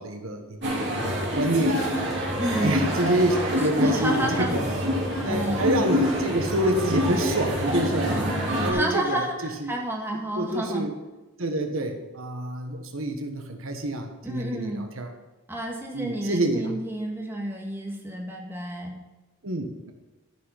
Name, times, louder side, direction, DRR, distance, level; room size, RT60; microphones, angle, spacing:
voice 1, 0.0-1.9 2.6-4.8 5.2-8.3 8.6-9.7 10.4-10.9 11.4-15.1 15.9-16.8 19.4-19.9, right 1 dB, 70° right, 5 dB, 1.3 m, -27 dB
sound 1, 0.6-8.7, equal, 55° right, 2.8 m, -26 dB
voice 2, 2.4-2.8 3.8-4.6 5.2-5.8 8.6-10.8 14.2-14.8 15.5-19.0, right 1 dB, 10° right, -1 dB, 1.7 m, -30 dB
13.5 x 5.6 x 5.6 m, 1.1 s
head